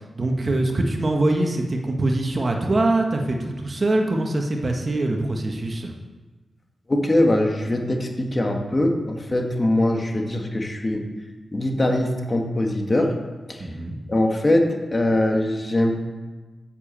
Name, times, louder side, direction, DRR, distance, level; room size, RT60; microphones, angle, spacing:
voice 1, 0.1-5.9 13.6-14.0, right 2 dB, 45° right, 2 dB, 1.5 m, -23 dB
voice 2, 6.9-11.0 11.5-13.1 13.5-13.7 14.1-16.0, left 1 dB, 30° left, 2 dB, 1.7 m, -22 dB
8.0 x 7.3 x 7.4 m, 1.3 s
cardioid pair, 50°, 0 cm